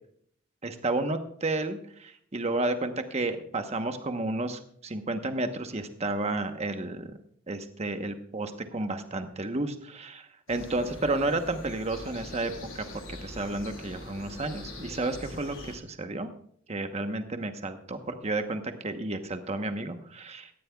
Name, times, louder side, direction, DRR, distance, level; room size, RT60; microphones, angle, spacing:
voice 1, 0.6-7.1 7.5-16.3 16.7-20.5, right 2 dB, 35° right, 7 dB, 1.0 m, -32 dB
sound 1, 10.5-15.7, left 2 dB, 80° left, 5.8 m, -43 dB
18.5 x 14.0 x 2.3 m, 0.63 s
head